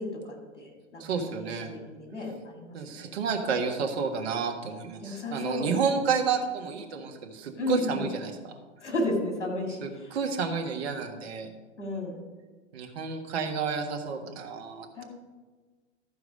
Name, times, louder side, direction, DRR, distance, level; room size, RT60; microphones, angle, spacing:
voice 1, 0.0-1.5 1.9-3.1 5.0-5.7 7.5-8.1 8.8-10.1 11.8-12.1 15.0-15.1, left 2 dB, 85° left, 2 dB, 2.4 m, -33 dB
voice 2, 1.0-1.8 2.7-8.3 9.8-11.5 12.7-15.0, right 5 dB, 60° right, 4 dB, 1.6 m, -30 dB
13.5 x 4.8 x 5.4 m, 1.3 s
hypercardioid pair, 110°, 35 cm